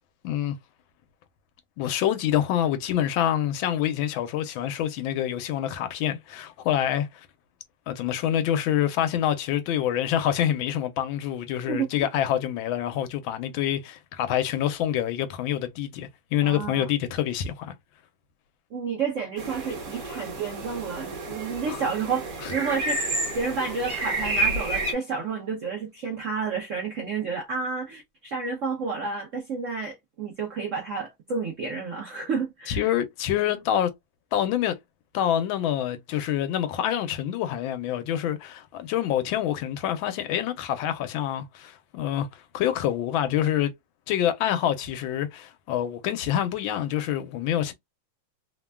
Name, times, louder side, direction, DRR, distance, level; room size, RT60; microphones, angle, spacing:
voice 1, 0.2-0.6 1.8-7.3 7.9-17.7 21.7-21.8 22.4-22.5 32.7-33.9 34.3-34.7 35.1-43.7 44.1-47.7, left 11 dB, 85° left, 1.4 m, -26 dB
voice 2, 11.7-12.1 16.4-16.8 18.7-23.0 23.3-32.9, right 5 dB, 75° right, 0.7 m, -30 dB
sound 1, 19.4-24.9, right 2 dB, 50° right, 1.3 m, -30 dB
3.3 x 2.2 x 2.2 m
omnidirectional pair, 2.1 m